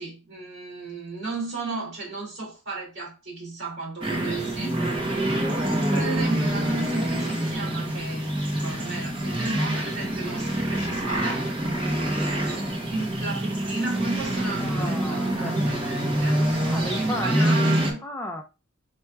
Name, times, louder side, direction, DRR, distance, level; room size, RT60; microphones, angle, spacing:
voice 1, 0.0-4.8 5.9-11.5 12.9-16.5 16.9-18.0, right 3 dB, 55° right, 2.4 m, -34 dB
sound 1, 4.0-17.9, right 1 dB, 25° right, 0.8 m, -26 dB
voice 2, 11.9-12.4 14.6-15.6 16.2-17.6 18.0-18.4, left 1 dB, 10° left, 0.4 m, -35 dB
4.4 x 4.4 x 2.3 m
head